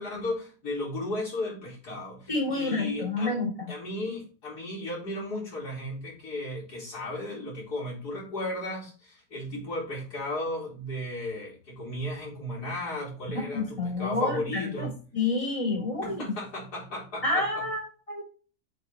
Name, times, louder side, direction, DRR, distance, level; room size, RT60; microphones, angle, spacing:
voice 1, 0.0-3.3 3.7-14.9 16.0-17.6, left 1 dB, 90° left, -5 dB, 4.6 m, -35 dB
voice 2, 2.3-3.7 13.3-16.2 17.2-18.2, left 2 dB, 20° left, 1 dB, 2.8 m, -29 dB
8.1 x 4.9 x 4.4 m, 0.37 s
omnidirectional pair, 1.7 m